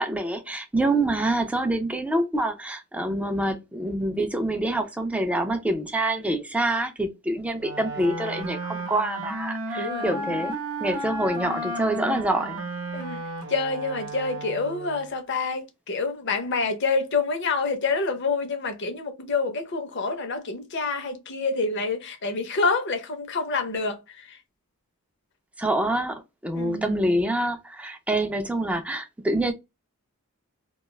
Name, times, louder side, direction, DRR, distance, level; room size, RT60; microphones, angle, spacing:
voice 1, 0.0-10.5 10.8-12.6 25.6-29.5, right 1 dB, 5° right, 0.3 m, -26 dB
Wind instrument woodwind instrument, 7.6-15.1, right 1 dB, 75° right, 0.7 m, -33 dB
voice 2, 9.7-10.5 12.9-13.2 13.5-24.4 26.5-27.1, left 4 dB, 50° left, 0.6 m, -27 dB
2.4 x 2.2 x 3.1 m
head